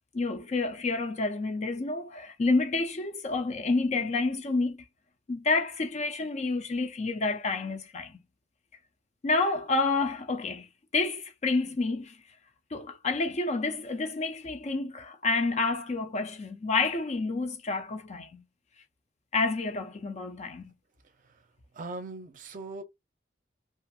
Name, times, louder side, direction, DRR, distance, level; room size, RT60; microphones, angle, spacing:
voice 1, 0.1-4.8 5.3-8.2 9.2-10.7 10.9-12.2 12.7-18.4 19.3-20.7, left 3 dB, 40° left, 0.4 m, -29 dB
voice 2, 21.7-22.8, right 3 dB, 45° right, 0.5 m, -39 dB
2.5 x 2.4 x 2.6 m
head